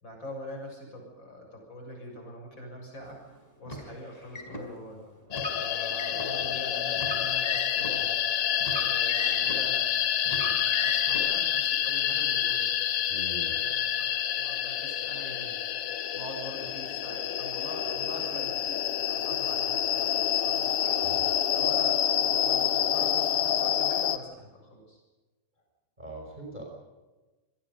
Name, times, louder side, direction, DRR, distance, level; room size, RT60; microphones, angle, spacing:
voice 1, 0.0-3.2 3.6-5.0 5.5-8.1 8.7-9.9 10.2-12.7 13.5-14.1 14.4-15.5 16.1-21.0 21.5-25.0, equal, 35° left, 1 dB, 7.5 m, -43 dB
Car, 3.6-4.6 5.3-6.3 6.9-7.9 8.6-9.7 10.3-11.2, left 1 dB, 10° left, 4.4 m, -37 dB
sound 1, 5.3-24.2, left 10 dB, 65° left, 1.4 m, -28 dB
voice 2, 13.1-13.6 21.0-21.3 26.0-26.6, right 1 dB, 10° right, 1 dB, 5.6 m, -42 dB
27.0 x 21.5 x 5.4 m, 1.2 s
omnidirectional pair, 3.8 m